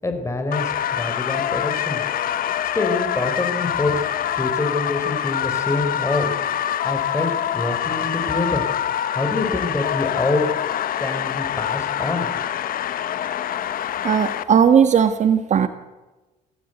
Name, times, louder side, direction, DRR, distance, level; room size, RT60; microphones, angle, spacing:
voice 1, 0.0-2.0 2.7-4.0 4.4-6.3 6.8-8.7 9.1-10.5 11.0-12.3, left 2 dB, 15° left, 6 dB, 4.9 m, -25 dB
sound 1, 0.5-14.4, left 10 dB, 60° left, 1.3 m, -25 dB
voice 2, 14.0-15.7, right 7 dB, 45° right, 10 dB, 1.5 m, -17 dB
26.0 x 17.0 x 8.2 m, 1.1 s
cardioid pair, 110°, 17 cm